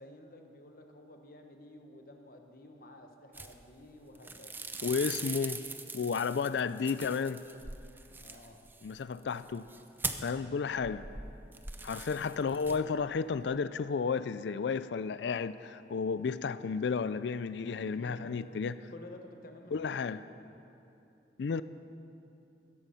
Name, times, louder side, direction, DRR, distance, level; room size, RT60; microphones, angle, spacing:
voice 1, 0.0-4.6 8.1-8.6 17.9-18.5 18.9-20.2, left 1 dB, 50° left, 4 dB, 1.1 m, -52 dB
sound 1, 3.3-3.9 4.1-10.4 10.8-13.0 13.3-13.6, right 3 dB, 10° right, 0.5 m, -42 dB
voice 2, 4.8-5.6 5.9-7.4 8.8-9.7 10.2-11.1 11.8-18.7 19.7-20.2 21.4-21.6, left 5 dB, 80° left, 15 dB, 0.4 m, -32 dB
16.0 x 13.5 x 5.7 m, 2.8 s
head